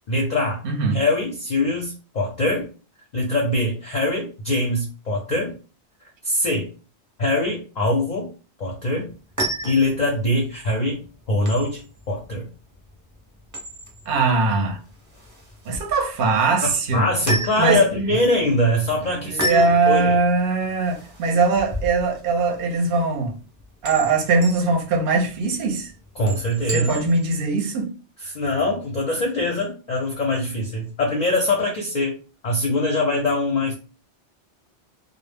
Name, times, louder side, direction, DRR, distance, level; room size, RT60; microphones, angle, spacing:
voice 1, 0.1-0.6 0.9-2.7 3.1-5.5 6.2-6.7 7.2-8.3 8.6-9.1 9.6-11.8 12.1-12.5 16.6-20.2 26.2-27.0 28.2-32.1 32.4-33.7, left 1 dB, 50° left, 0.5 m, -23 dB
voice 2, 0.6-1.0 14.1-14.8 15.7-17.1 17.6-17.8 19.1-23.3 23.8-25.9 26.7-27.9, right 3 dB, 60° right, 0.7 m, -21 dB
sound 1, 9.1-27.3, equal, 20° right, 0.5 m, -34 dB
2.0 x 2.0 x 3.3 m
omnidirectional pair, 1.2 m